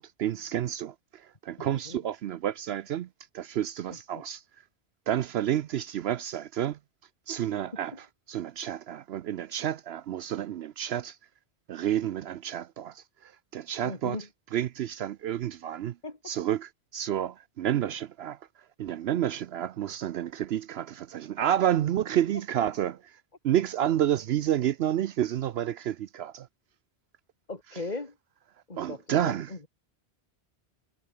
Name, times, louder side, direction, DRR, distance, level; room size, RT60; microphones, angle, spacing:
voice 1, 0.0-3.1 3.3-4.4 5.1-6.8 7.3-11.2 11.7-14.2 14.5-16.0 16.2-18.4 18.8-26.5 28.8-29.5, right 11 dB, 70° right, 0.8 m, -30 dB
voice 2, 1.6-2.0 3.9-4.2 7.9-8.0 13.8-14.3 16.0-16.3 27.5-28.2 28.7-29.7, left 3 dB, 40° left, 2.9 m, -39 dB
omnidirectional pair, 1.1 m